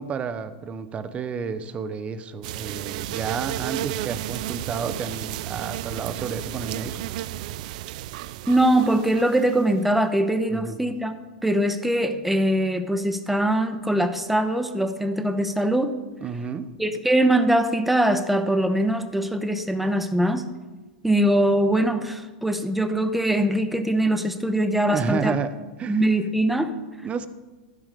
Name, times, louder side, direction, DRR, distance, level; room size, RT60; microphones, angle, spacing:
voice 1, 0.0-7.0 10.5-10.8 16.2-16.7 24.9-25.5 25.8-26.0 27.0-27.3, right 6 dB, 25° right, 13 dB, 0.8 m, -31 dB
sound 1, 2.4-10.0, right 14 dB, 60° right, 0.4 m, -33 dB
voice 2, 8.5-11.1 11.4-15.9 16.8-20.4 21.0-25.3 25.8-26.7, right 1 dB, 5° right, 8 dB, 0.9 m, -22 dB
15.0 x 5.9 x 5.3 m, 1.2 s
hypercardioid pair, 110°, 5 cm